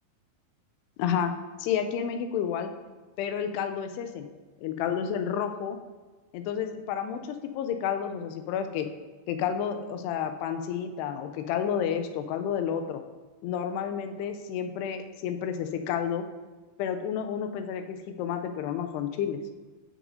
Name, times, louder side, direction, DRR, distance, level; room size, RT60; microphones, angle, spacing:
voice 1, 1.0-2.7 3.2-4.3 4.6-5.8 6.3-8.9 9.3-13.0 13.4-16.3 16.8-19.4, left 8 dB, 85° left, 7 dB, 2.6 m, -30 dB
14.0 x 6.0 x 2.7 m, 1.3 s
omnidirectional pair, 4.8 m